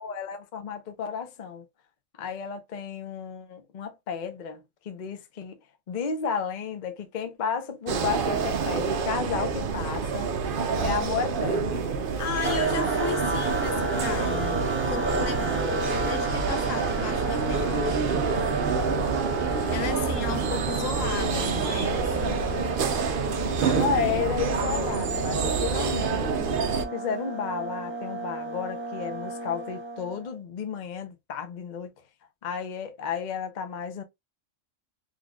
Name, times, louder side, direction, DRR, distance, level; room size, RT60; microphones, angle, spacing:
voice 1, 0.0-1.6 2.2-5.5 5.9-10.4 10.8-11.8 19.9-20.5 23.7-26.5 26.9-31.9 32.4-34.0, left 7 dB, 45° left, 0.6 m, -32 dB
sound 1, 7.9-26.9, right 5 dB, 55° right, 0.6 m, -27 dB
voice 2, 12.2-18.0 19.7-22.8 23.6-24.2, left 7 dB, 70° left, 1.1 m, -35 dB
sound 2, 12.4-30.3, right 1 dB, 15° right, 0.5 m, -33 dB
3.9 x 3.1 x 2.3 m
omnidirectional pair, 1.4 m